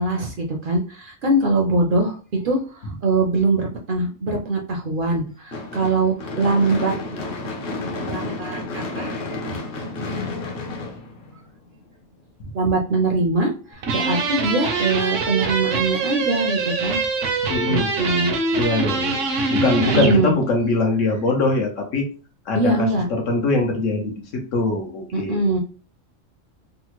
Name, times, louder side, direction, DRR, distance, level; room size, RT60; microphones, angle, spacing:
voice 1, 0.0-2.2 2.4-6.9 8.1-9.6 12.5-17.0 17.7-18.3 19.9-20.3 22.5-23.1 25.1-25.6, right 2 dB, 55° right, 1 dB, 0.6 m, -22 dB
Gunshot gunfire / Fireworks, 5.5-11.8, left 2 dB, 55° left, 0.9 m, -31 dB
sound 1, 13.8-20.2, right 4 dB, 80° right, 1.0 m, -24 dB
voice 2, 17.5-17.9 18.5-19.2 19.5-22.1 22.5-25.4, left 2 dB, 80° left, 2 dB, 1.2 m, -22 dB
3.6 x 2.1 x 3.0 m, 0.37 s
omnidirectional pair, 1.3 m